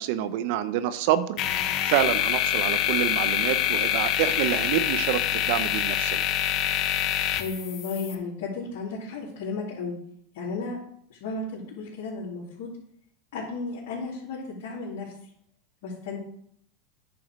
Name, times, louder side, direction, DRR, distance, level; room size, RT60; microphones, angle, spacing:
voice 1, 0.0-1.4 1.8-6.2, right 12 dB, 65° right, 13 dB, 0.7 m, -27 dB
sound 1, 1.4-8.2, left 11 dB, 50° left, 1.0 m, -26 dB
voice 2, 7.4-9.9 10.3-10.8 11.1-12.7 13.3-15.1 15.8-16.2, left 3 dB, 65° left, -7 dB, 2.9 m, -34 dB
9.4 x 4.9 x 6.1 m, 0.67 s
hypercardioid pair, 105°, 0 cm